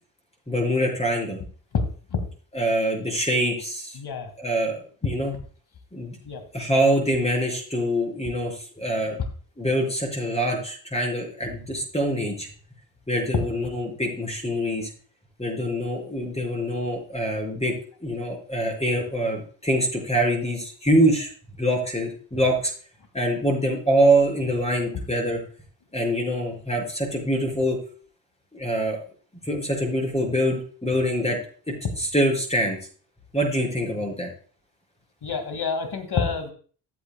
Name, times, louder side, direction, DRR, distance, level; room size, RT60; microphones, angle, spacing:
voice 1, 0.5-1.4 2.5-4.0 4.4-5.3 5.9-6.2 6.5-9.2 9.6-12.5 13.1-14.9 15.4-17.7 18.0-21.3 21.6-22.7 23.1-25.4 25.9-27.8 28.5-29.0 29.4-31.4 32.0-32.8 33.3-34.3, right 1 dB, 10° left, 0 dB, 5.7 m, -24 dB
voice 2, 4.0-4.3 6.2-6.4 33.7-33.8 35.2-36.5, left 5 dB, 50° left, 8 dB, 2.1 m, -27 dB
14.5 x 8.3 x 2.3 m, 0.43 s
hypercardioid pair, 45°, 49 cm